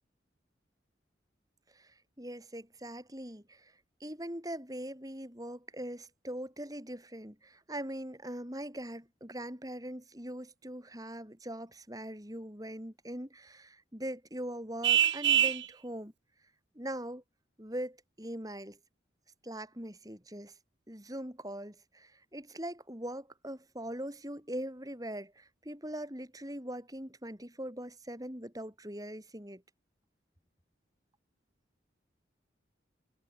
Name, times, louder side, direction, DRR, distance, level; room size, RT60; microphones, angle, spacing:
voice 1, 1.7-3.7 4.0-16.1 16.7-17.2 17.6-18.8 19.4-20.5 20.9-29.6, right 1 dB, 20° right, 5.7 m, -41 dB
Vehicle horn car horn honking, 14.8-15.7, right 10 dB, 75° right, 1.3 m, -25 dB
head